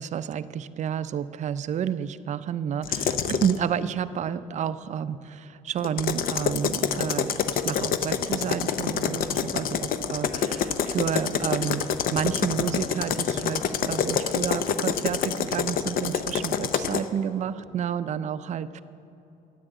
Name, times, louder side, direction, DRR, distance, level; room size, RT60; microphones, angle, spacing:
voice 1, 0.0-11.9 12.1-18.8, right 8 dB, 45° right, 14 dB, 0.4 m, -30 dB
sound 1, 2.8-3.6 5.8-17.0, left 7 dB, 60° left, 0.6 m, -27 dB
9.9 x 9.2 x 7.8 m, 3.0 s
cardioid pair, 110°, 17 cm